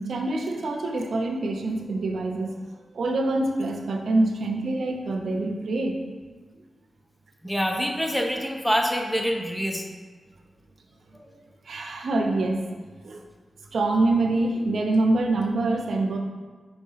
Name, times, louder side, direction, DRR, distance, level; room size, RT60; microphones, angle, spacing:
voice 1, 0.0-2.5 2.9-6.0 11.7-12.6 13.0-13.2 13.7-16.2, right 2 dB, 70° right, 3 dB, 0.7 m, -25 dB
voice 2, 7.4-9.8 11.1-11.3, equal, 5° left, 2 dB, 0.7 m, -26 dB
5.2 x 4.7 x 5.6 m, 1.4 s
wide cardioid pair, 150°, 0 cm